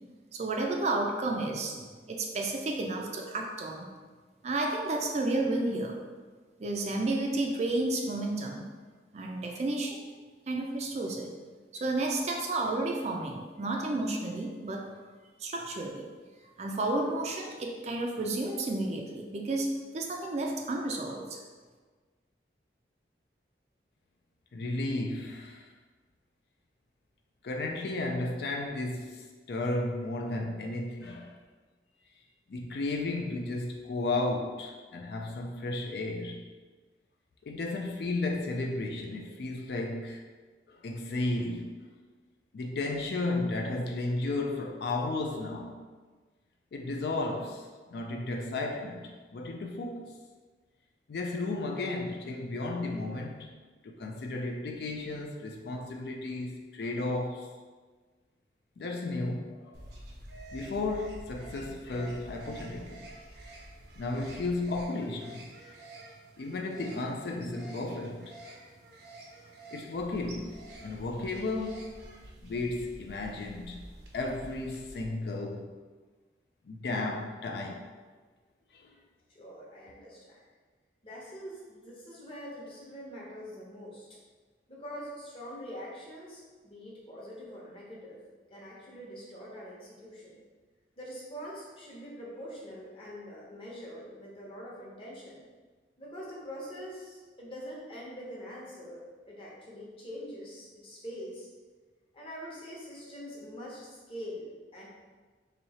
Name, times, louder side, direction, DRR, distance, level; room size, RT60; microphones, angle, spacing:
voice 1, 0.3-3.9 4.4-6.0 6.6-8.7 9.1-10.0 10.5-11.3 11.7-14.9 15.4-16.0 16.6-21.4, right 2 dB, 40° right, 1 dB, 0.4 m, -31 dB
voice 2, 24.5-25.7 27.4-31.4 32.5-36.4 37.4-40.2 40.7-41.8 42.5-45.8 46.7-50.2 51.1-53.5 53.8-57.5 58.8-59.8 60.5-63.1 64.0-65.5 66.4-68.3 69.7-72.1 72.4-73.8 74.1-75.7 76.6-77.9 78.7-78.9, left 2 dB, 60° left, 1 dB, 0.4 m, -34 dB
sound 1, 59.7-75.1, right 1 dB, 75° right, 0.7 m, -48 dB
voice 3, 79.3-80.4 81.0-84.1 84.7-88.2 88.5-90.4 91.0-95.4 96.0-101.5 102.1-104.9, equal, 30° left, -5 dB, 0.9 m, -44 dB
3.0 x 2.7 x 4.1 m, 1.4 s
head